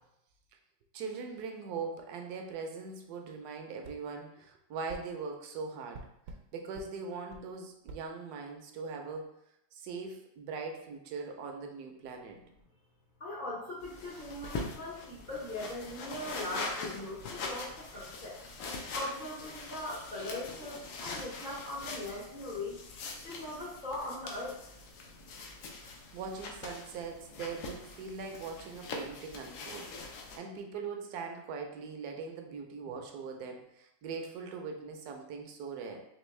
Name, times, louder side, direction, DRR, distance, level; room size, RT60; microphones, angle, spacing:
voice 1, 0.9-6.1 6.5-9.3 9.7-12.4 26.1-29.9 30.4-36.0, right 5 dB, 70° right, 3 dB, 1.0 m, -41 dB
sound 1, 3.8-4.0 4.9-5.1 5.9-6.4 6.7-6.9 7.3-7.5 7.9-8.0, right 3 dB, 90° right, 1.3 m, -47 dB
voice 2, 13.2-18.4 18.9-22.8 23.2-24.6, left 1 dB, 55° left, -6 dB, 0.5 m, -40 dB
sound 2, 13.8-30.4, left 3 dB, 85° left, 1.4 m, -43 dB
4.4 x 2.9 x 3.2 m, 0.81 s
omnidirectional pair, 2.0 m